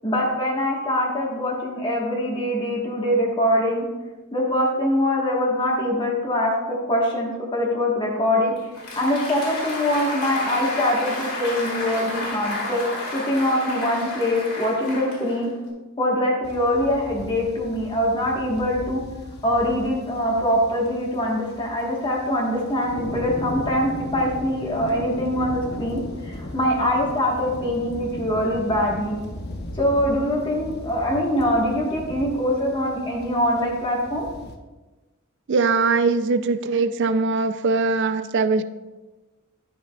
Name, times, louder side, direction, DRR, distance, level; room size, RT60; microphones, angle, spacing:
voice 1, 0.0-3.8 4.3-8.5 9.0-12.8 13.1-15.5 16.0-19.0 19.4-29.2 29.8-34.2, left 1 dB, 25° left, -3 dB, 1.3 m, -23 dB
Applause, 8.6-15.7, left 2 dB, 90° left, 2.0 m, -31 dB
sound 1, 16.4-34.6, left 1 dB, 50° left, 0.8 m, -37 dB
voice 2, 35.5-38.6, right 4 dB, 55° right, 12 dB, 0.4 m, -21 dB
11.0 x 6.4 x 2.3 m, 1.2 s
head